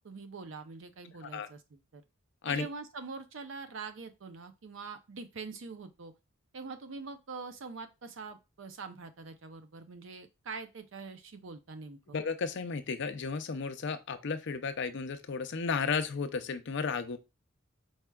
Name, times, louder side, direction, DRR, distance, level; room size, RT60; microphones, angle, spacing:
voice 1, 0.0-2.0 2.5-6.1 6.5-12.2, right 4 dB, 65° right, 9 dB, 0.5 m, -44 dB
voice 2, 12.1-17.2, left 5 dB, 60° left, 10 dB, 0.5 m, -33 dB
4.7 x 4.2 x 2.3 m, 0.25 s
head